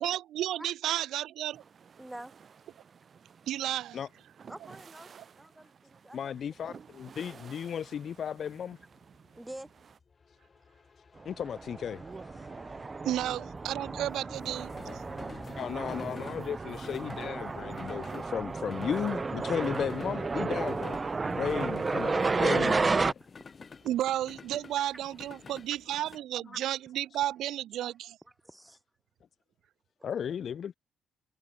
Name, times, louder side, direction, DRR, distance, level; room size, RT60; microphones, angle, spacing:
voice 1, 0.0-1.6 3.5-4.0 13.0-15.0 23.8-28.2, right 12 dB, 80° right, 1.2 m, -32 dB
sound 1, 1.5-10.0, right 6 dB, 45° right, 6.5 m, -54 dB
voice 2, 2.0-2.3 4.5-5.1 5.4-6.3 6.6-6.8 9.4-9.7 17.8-17.9 18.3-18.4 26.5-26.6 28.4-28.8, right 1 dB, 10° right, 1.4 m, -46 dB
voice 3, 6.1-8.8 11.3-12.0 15.6-23.1 30.0-30.8, left 8 dB, 60° left, 0.4 m, -35 dB
sound 2, 6.7-26.2, left 5 dB, 35° left, 1.3 m, -51 dB
sound 3, 11.4-23.1, right 4 dB, 30° right, 1.2 m, -32 dB
cardioid pair, 90°, 0 cm